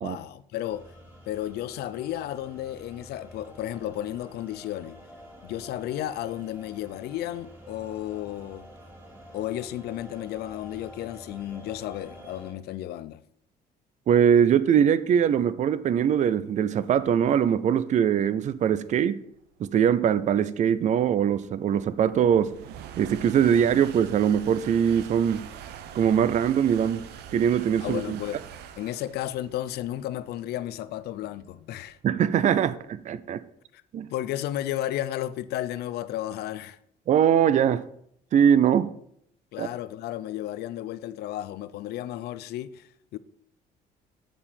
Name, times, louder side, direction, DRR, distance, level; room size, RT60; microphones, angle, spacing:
voice 1, 0.0-0.9 1.3-5.0 5.4-8.7 9.3-13.2 27.8-28.4 28.8-32.0 33.7-33.8 34.1-36.8 39.5-43.2, left 13 dB, 70° left, 0.5 m, -33 dB
sound 1, 0.7-12.5, equal, 10° right, 2.5 m, -48 dB
voice 2, 14.1-19.2 19.6-22.5 23.0-25.5 25.9-27.1 27.3-28.2 32.0-33.4 33.9-34.1 37.1-37.8 38.3-38.9 39.6-39.7, right 8 dB, 45° right, 0.5 m, -22 dB
sound 2, 19.6-32.9, right 9 dB, 80° right, 0.7 m, -44 dB
7.4 x 6.9 x 4.3 m
cardioid pair, 110°, 17 cm